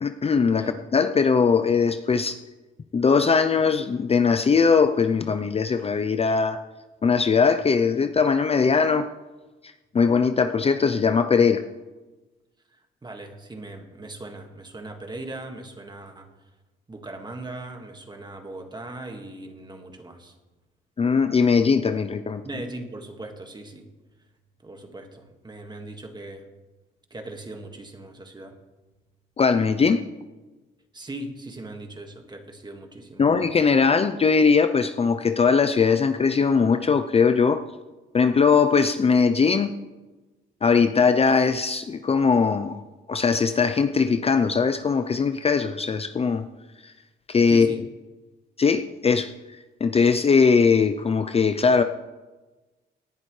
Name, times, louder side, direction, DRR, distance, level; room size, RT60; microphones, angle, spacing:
voice 1, 0.0-2.4 2.9-6.6 7.0-9.1 9.9-11.6 21.0-22.4 29.4-30.0 33.2-37.6 38.1-39.7 40.6-42.8 43.1-46.4 46.8-46.9 47.3-47.7 48.6-49.3 49.8-51.8, left 5 dB, 30° left, 9 dB, 0.6 m, -20 dB
voice 2, 12.7-16.3 16.9-20.4 22.4-23.9 24.6-26.5 27.1-28.6 30.9-33.3 47.5-47.8, right 2 dB, 20° right, 4 dB, 1.9 m, -39 dB
18.0 x 10.5 x 3.3 m, 1.2 s
cardioid pair, 90°, 20 cm